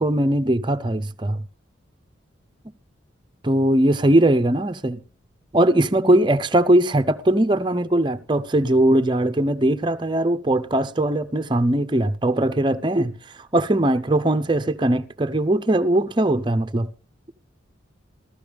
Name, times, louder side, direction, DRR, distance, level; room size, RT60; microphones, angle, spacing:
voice 1, 0.0-1.4 3.4-5.0 5.5-13.1 13.5-16.9, right 1 dB, 25° right, 0.6 m, -20 dB
14.5 x 13.5 x 3.4 m
head